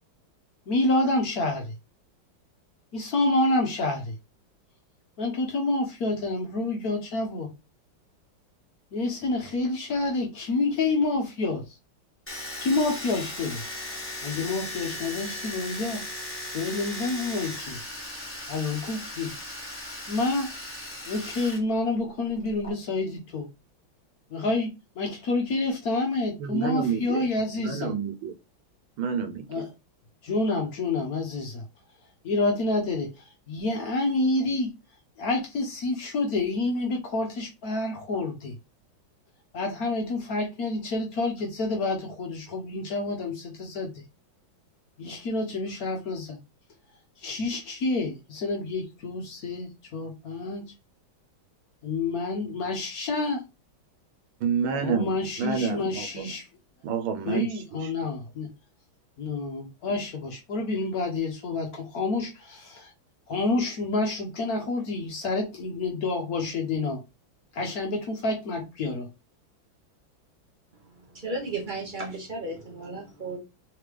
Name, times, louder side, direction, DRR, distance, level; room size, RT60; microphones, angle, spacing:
voice 1, 0.7-1.7 2.9-4.1 5.2-7.5 8.9-11.6 12.6-13.6 14.2-16.0 16.5-17.8 18.5-19.3 20.1-20.5 21.0-23.5 24.3-24.7 25.0-27.9 29.5-29.7 30.2-31.6 32.2-34.7 35.2-38.5 39.5-44.0 45.0-46.4 47.2-50.6 51.8-53.4 54.8-56.5 57.2-58.5 59.2-62.9 63.3-67.0 67.5-69.1, left 2 dB, 60° left, 1.1 m, -28 dB
Domestic sounds home sounds, 12.3-21.6 21.8-22.7, left 1 dB, 10° left, 1.0 m, -37 dB
voice 2, 26.4-27.2 27.6-28.3 29.0-29.4 54.4-55.1 55.4-56.1 56.8-57.5, right 6 dB, 85° right, 1.5 m, -28 dB
voice 3, 70.8-73.4, right 2 dB, 35° right, 0.9 m, -34 dB
3.6 x 3.3 x 3.3 m
omnidirectional pair, 2.2 m